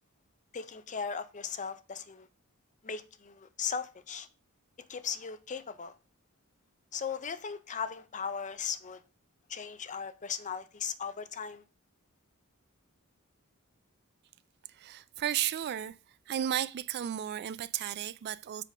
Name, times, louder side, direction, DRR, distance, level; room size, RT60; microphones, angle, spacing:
voice 1, 0.5-2.3 2.8-4.3 4.9-5.9 6.9-9.0 9.5-11.6, left 6 dB, 35° left, 0.6 m, -37 dB
voice 2, 14.8-15.9 16.3-18.6, right 10 dB, 50° right, 0.3 m, -33 dB
7.5 x 3.8 x 4.9 m
head